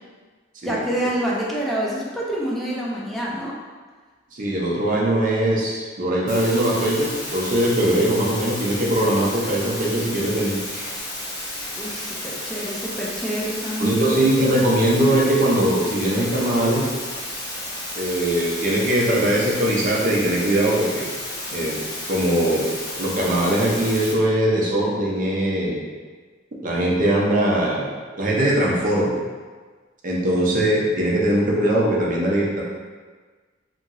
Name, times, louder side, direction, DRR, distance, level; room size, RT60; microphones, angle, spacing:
voice 1, 0.6-3.5 11.8-14.1 14.5-14.6, right 1 dB, ahead, -6 dB, 0.4 m, -27 dB
voice 2, 4.3-10.9 13.8-16.9 18.0-21.1 21.5-21.8 22.1-22.7 23.0-25.8 26.6-27.9 28.2-29.2 30.0-32.6, right 1 dB, 45° right, -4 dB, 0.6 m, -21 dB
sound 1, 6.3-24.1, left 1 dB, 50° left, 0.9 m, -32 dB
2.9 x 2.7 x 2.5 m, 1.4 s
head